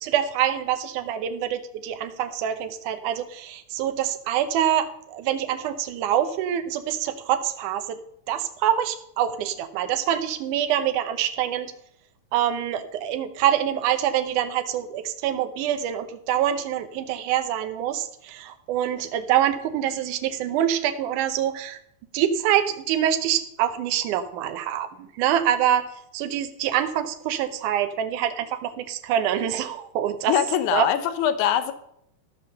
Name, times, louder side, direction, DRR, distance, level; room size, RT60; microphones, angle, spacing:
voice 1, 0.0-8.0 8.3-11.7 12.3-21.8 22.1-25.9 26.1-30.3 30.7-30.9, right 10 dB, 85° right, 8 dB, 2.3 m, -25 dB
voice 2, 30.3-31.7, left 10 dB, 75° left, 10 dB, 2.2 m, -22 dB
14.0 x 5.6 x 6.6 m, 0.72 s
omnidirectional pair, 3.5 m